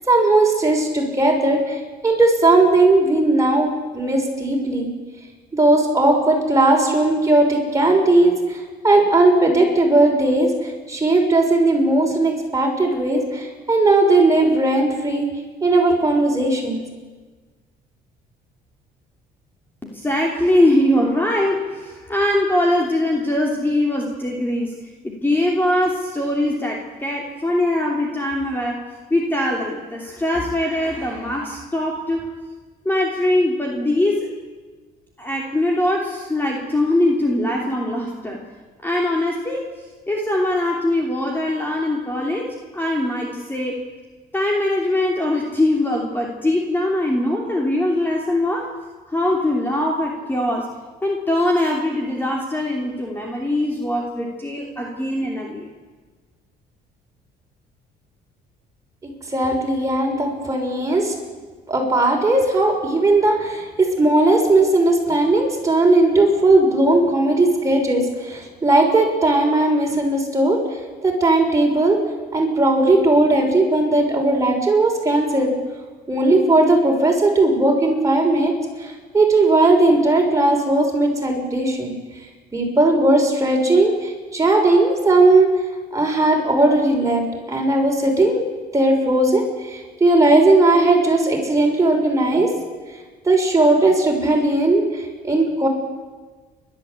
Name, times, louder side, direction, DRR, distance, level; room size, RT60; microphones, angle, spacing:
voice 1, 0.1-4.9 5.5-15.3 15.6-16.8 59.0-61.1 61.7-70.6 71.0-72.0 72.3-75.5 76.1-78.5 78.8-82.0 82.5-85.5 85.9-87.2 87.5-88.4 88.7-92.5 93.2-95.7, right 2 dB, 20° right, 0 dB, 6.3 m, -17 dB
voice 2, 19.8-24.8 25.0-28.8 29.1-32.3 32.8-34.3 35.2-38.4 38.8-39.7 40.1-43.8 44.3-48.7 49.1-50.7 51.0-55.7, left 1 dB, 10° left, -1 dB, 3.0 m, -22 dB
30.0 x 12.5 x 8.5 m, 1.3 s
cardioid pair, 110°, 17 cm